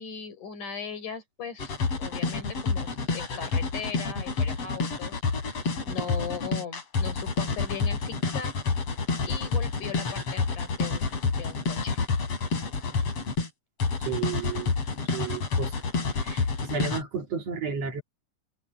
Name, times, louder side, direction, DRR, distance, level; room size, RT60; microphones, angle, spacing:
voice 1, 0.0-1.7 2.0-8.5 9.2-12.0, left 6 dB, 60° left, 6.0 m, -39 dB
sound 1, 1.6-13.5 13.8-17.0, left 4 dB, 45° left, 4.8 m, -28 dB
voice 2, 14.0-14.7 15.1-15.7 16.2-18.0, right 5 dB, 50° right, 3.0 m, -32 dB
omnidirectional pair, 4.0 m